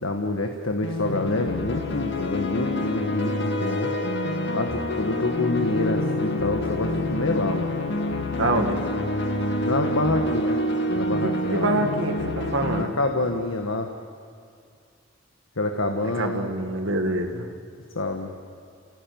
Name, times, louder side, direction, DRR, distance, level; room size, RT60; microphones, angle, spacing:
voice 1, 0.0-3.9 4.5-7.7 8.4-9.0 9.6-10.6 10.9-11.7 12.7-13.9 15.6-16.5 17.9-18.3, left 2 dB, 90° left, 4 dB, 1.6 m, -27 dB
sound 1, 0.8-12.8, left 1 dB, 60° left, 2.2 m, -27 dB
voice 2, 8.4-8.8 11.2-13.0 16.0-17.5, right 2 dB, 70° right, 3 dB, 2.0 m, -26 dB
29.0 x 16.5 x 9.4 m, 2.3 s
head